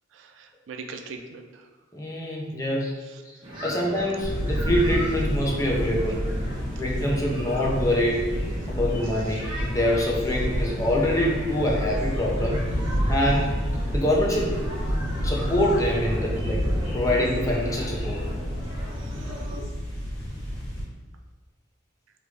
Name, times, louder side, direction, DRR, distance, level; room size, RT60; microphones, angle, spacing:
voice 1, 0.1-1.7 3.0-3.2 9.0-9.4 19.0-19.6, right 4 dB, 75° right, 5 dB, 0.3 m, -42 dB
voice 2, 1.9-2.9 3.2-3.4 3.6-6.2 6.8-8.2 8.7-12.6 13.1-13.5 13.9-14.6 15.2-16.6 16.9-18.2, left 1 dB, 15° left, -3 dB, 0.6 m, -25 dB
sound 1, 3.4-19.6, equal, 25° right, 0.8 m, -38 dB
sound 2, 4.2-20.8, equal, 70° left, 1.3 m, -29 dB
3.2 x 2.5 x 3.2 m, 1.4 s
head